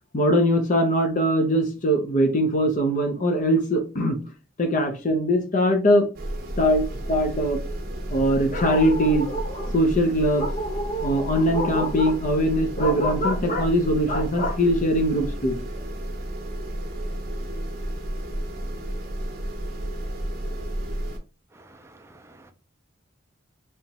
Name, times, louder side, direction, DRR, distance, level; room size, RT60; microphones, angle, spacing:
voice 1, 0.1-4.2 4.6-6.1 6.6-7.6 8.1-15.6, equal, 40° left, 0.6 m, -22 dB
sound 1, 6.1-21.2, right 1 dB, 50° right, 0.7 m, -32 dB
voice 2, 21.5-22.5, right 2 dB, 15° right, 0.4 m, -51 dB
3.4 x 3.0 x 2.8 m
head